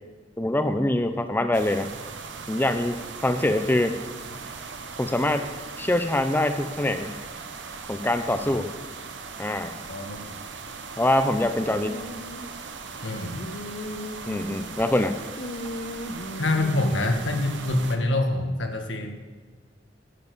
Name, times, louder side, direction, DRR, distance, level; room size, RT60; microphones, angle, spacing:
voice 1, 0.4-1.9 2.5-4.0 5.0-5.5 5.8-7.1 7.9-8.7 9.4-9.7 11.0-12.0 14.3-15.2, left 1 dB, 10° left, 8 dB, 0.5 m, -24 dB
sound 1, 1.5-18.0, right 5 dB, 75° right, 1.1 m, -39 dB
sound 2, 11.9-12.5 13.1-15.0 15.4-17.9, left 1 dB, 50° left, 1.0 m, -37 dB
voice 2, 13.0-13.4 16.4-19.1, left 2 dB, 85° left, 4 dB, 1.7 m, -26 dB
11.0 x 7.0 x 8.1 m, 1.4 s
head